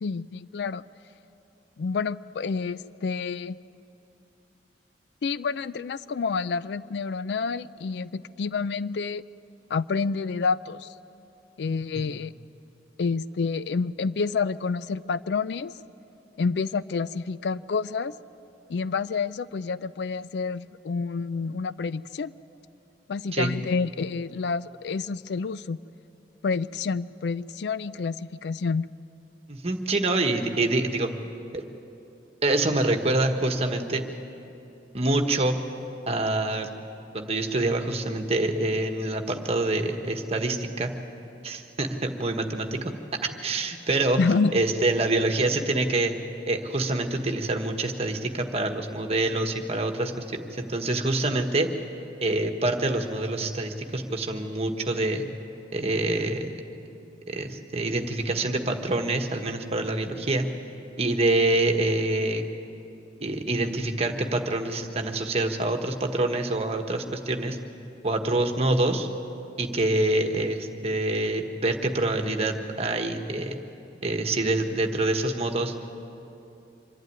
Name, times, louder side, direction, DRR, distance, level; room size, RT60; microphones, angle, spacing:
voice 1, 0.0-0.8 1.8-3.6 5.2-9.2 9.7-10.9 11.6-12.3 13.0-15.7 16.4-18.1 18.7-22.3 23.1-25.8 26.4-28.9 44.2-44.5, left 4 dB, 65° left, 17 dB, 0.4 m, -28 dB
voice 2, 29.5-31.1 31.5-31.6 32.4-34.0 34.9-35.6 36.1-36.7 37.1-40.9 41.4-42.9 43.2-44.2 44.5-46.1 46.5-51.7 52.2-55.2 55.7-56.6 57.3-60.5 61.0-62.4 63.2-67.6 68.0-69.1 69.6-73.6 74.0-75.7, right 2 dB, 35° right, 4 dB, 1.3 m, -26 dB
25.0 x 12.0 x 9.5 m, 2.8 s
head